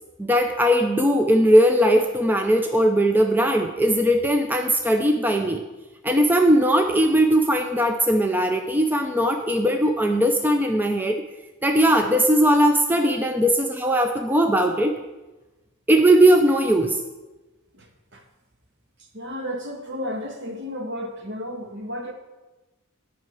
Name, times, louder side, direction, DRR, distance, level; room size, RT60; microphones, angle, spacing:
voice 1, 0.2-5.6 6.0-11.2 11.6-14.9 15.9-17.0, right 1 dB, 10° right, 0.5 m, -19 dB
voice 2, 17.7-18.2 19.0-22.1, equal, 55° right, 1.4 m, -33 dB
11.0 x 5.6 x 7.8 m
head